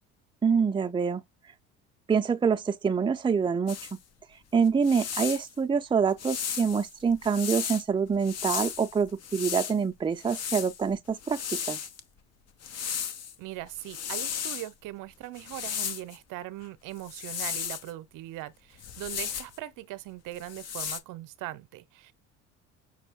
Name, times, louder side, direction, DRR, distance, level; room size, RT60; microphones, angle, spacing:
voice 1, 0.4-1.2 2.1-4.0 4.5-11.8, right 6 dB, 15° right, 0.5 m, -26 dB
sound 1, 3.7-3.9 4.7-5.5 6.2-7.8 8.2-9.8 10.2-12.0 12.6-13.3 13.7-14.7 15.3-16.2 17.0-17.9 18.8-19.6 20.3-21.0, left 8 dB, 45° left, 1.0 m, -35 dB
voice 2, 13.4-22.1, right 15 dB, 65° right, 0.8 m, -40 dB
6.2 x 2.3 x 3.6 m
hypercardioid pair, 70°, 34 cm